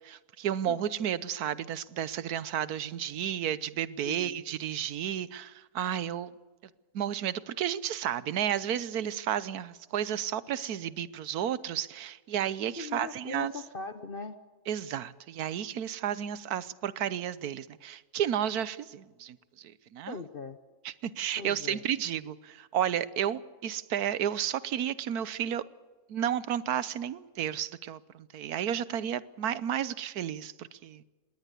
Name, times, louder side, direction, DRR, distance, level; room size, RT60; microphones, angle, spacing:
voice 1, 0.0-6.3 6.9-13.5 14.7-20.2 20.8-25.6 26.1-31.0, right 10 dB, 80° right, 1.3 m, -32 dB
voice 2, 4.1-4.4 12.8-14.4 20.1-20.6 21.4-21.8, left 4 dB, 40° left, 1.0 m, -40 dB
20.5 x 18.5 x 8.3 m
omnidirectional pair, 1.6 m